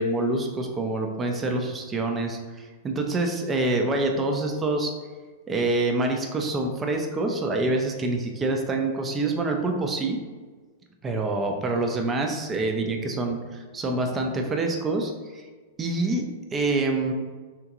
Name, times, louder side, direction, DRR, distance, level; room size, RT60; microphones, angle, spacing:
voice 1, 0.0-4.9 5.5-10.2 11.0-15.4 15.8-16.3 16.5-17.1, right 2 dB, 20° right, 3 dB, 0.5 m, -26 dB
3.6 x 2.4 x 2.9 m, 1.4 s
hypercardioid pair, 105°, 0 cm